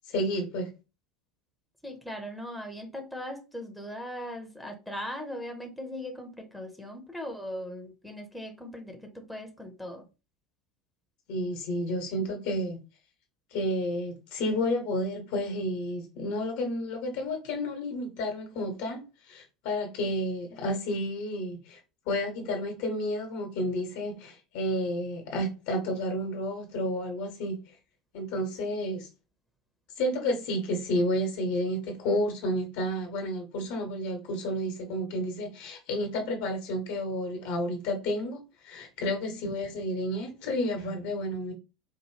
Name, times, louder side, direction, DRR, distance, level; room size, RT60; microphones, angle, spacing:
voice 1, 0.1-0.7 11.3-12.8 13.5-19.0 19.3-21.8 22.0-27.6 28.1-29.1 30.0-41.5, left 1 dB, 55° left, 1.3 m, -31 dB
voice 2, 1.8-10.1 39.0-39.4, left 1 dB, ahead, 1.1 m, -39 dB
4.3 x 2.6 x 3.2 m
figure-of-eight pair, 75°, 3 cm